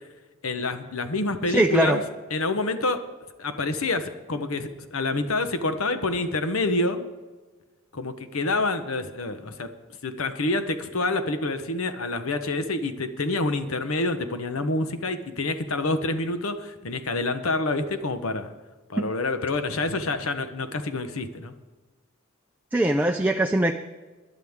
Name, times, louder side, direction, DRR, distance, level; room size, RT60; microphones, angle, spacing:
voice 1, 0.4-2.0 2.3-3.0 3.4-7.0 7.9-9.7 10.0-18.5 18.9-21.5, left 2 dB, 85° left, 10 dB, 1.0 m, -27 dB
voice 2, 1.5-2.0 19.0-19.1 22.7-23.7, right 1 dB, 10° right, 4 dB, 0.4 m, -21 dB
19.0 x 11.5 x 3.6 m, 1.3 s
head